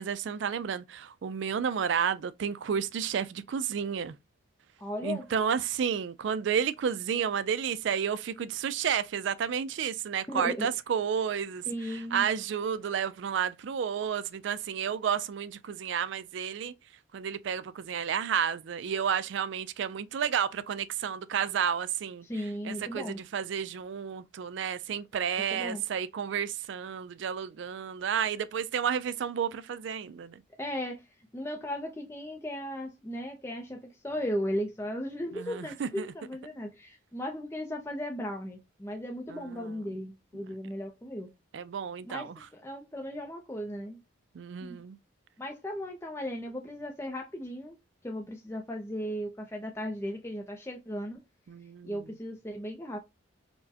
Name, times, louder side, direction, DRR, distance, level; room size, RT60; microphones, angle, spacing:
voice 1, 0.0-4.1 5.0-16.7 17.1-22.3 22.6-30.4 35.3-36.1 39.3-39.8 41.5-42.4 44.3-45.0 51.5-52.0, right 7 dB, 65° right, 0.3 m, -31 dB
voice 2, 4.8-5.3 10.3-10.7 11.7-12.3 22.2-23.2 25.5-25.8 30.6-31.1 31.3-41.3 42.0-44.0 44.6-44.8 45.4-47.8 48.0-51.2 51.8-53.0, equal, 15° left, 0.4 m, -36 dB
4.3 x 2.1 x 2.7 m
head